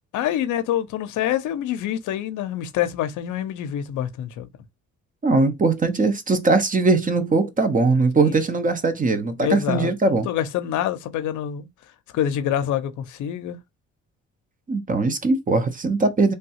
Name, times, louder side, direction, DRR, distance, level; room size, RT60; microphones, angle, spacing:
voice 1, 0.1-4.5 8.2-8.4 9.4-11.7 12.1-13.6, left 11 dB, 75° left, 0.6 m, -26 dB
voice 2, 5.2-10.3 14.7-16.3, right 3 dB, 25° right, 0.6 m, -20 dB
3.2 x 2.3 x 2.7 m
cardioid pair, 90°, 30 cm